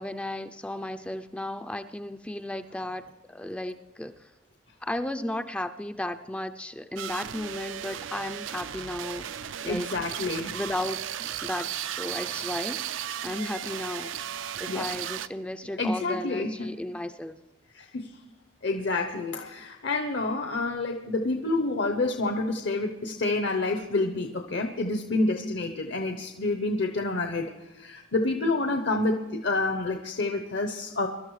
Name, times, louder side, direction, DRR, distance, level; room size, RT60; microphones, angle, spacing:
voice 1, 0.0-4.3 4.8-9.9 10.5-11.1 11.4-11.7 12.0-14.1 14.6-17.4, left 1 dB, 5° left, 8 dB, 0.3 m, -34 dB
sound 1, 7.0-15.3, right 10 dB, 85° right, 0.5 m, -35 dB
voice 2, 9.6-10.5 14.7-14.8 15.8-16.7 17.7-18.1 18.6-31.1, left 2 dB, 65° left, 4 dB, 0.8 m, -28 dB
23.5 x 12.0 x 3.2 m, 1.1 s
head